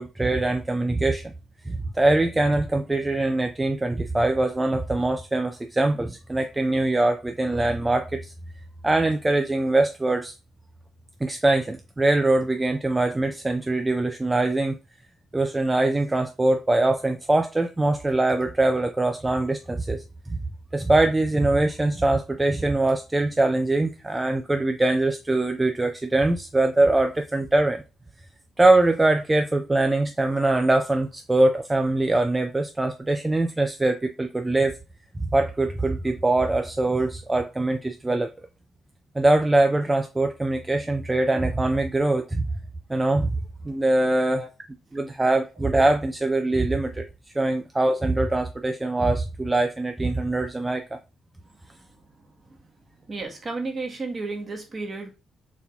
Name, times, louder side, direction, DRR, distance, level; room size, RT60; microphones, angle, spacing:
voice 1, 0.0-1.3 1.7-8.3 8.8-10.3 11.2-14.8 15.3-20.0 20.3-20.4 20.7-27.8 28.6-34.8 35.3-38.3 39.2-42.5 42.9-43.4 43.6-44.4 44.9-47.1 47.4-51.0, right 2 dB, 15° right, 0.4 m, -23 dB
voice 2, 44.2-44.5 51.7-52.0 52.4-52.6 53.0-55.1, right 3 dB, 35° right, 1.3 m, -33 dB
4.1 x 2.8 x 3.4 m
cardioid pair, 90°, 0 cm